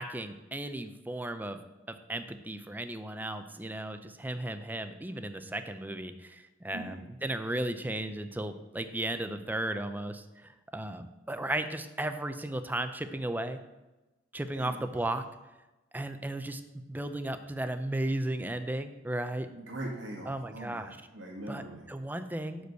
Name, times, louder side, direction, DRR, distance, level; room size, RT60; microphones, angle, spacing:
voice 1, 0.0-1.6 1.9-13.6 14.3-15.2 15.9-16.6 16.9-19.5 20.2-21.0 21.5-22.7, right 1 dB, 10° right, 9 dB, 0.5 m, -35 dB
voice 2, 6.7-7.0 14.5-15.0 19.5-21.9, right 1 dB, 80° right, -1 dB, 1.7 m, -41 dB
6.2 x 5.2 x 6.7 m, 1.0 s
head